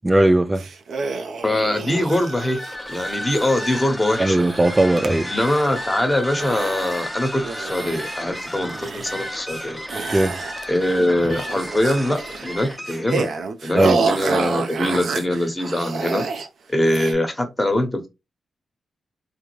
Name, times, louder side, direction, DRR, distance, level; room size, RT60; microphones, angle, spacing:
voice 1, 0.0-0.6 4.2-5.3 10.1-10.4 13.7-14.0, right 1 dB, 20° right, 0.5 m, -17 dB
sound 1, 0.6-5.1 5.3-6.0 6.4-7.1 7.4-8.4 8.7-9.6 9.9-10.9 11.2-16.5 16.8-17.1, right 4 dB, 70° right, 0.5 m, -29 dB
voice 2, 1.4-2.6 2.9-4.4 5.2-9.8 10.7-13.3 13.6-16.2 16.7-18.1, left 1 dB, 15° left, 1.2 m, -22 dB
sound 2, 2.1-13.5, left 1 dB, ahead, 0.9 m, -33 dB
3.6 x 2.1 x 3.2 m
cardioid pair, 55°, 0 cm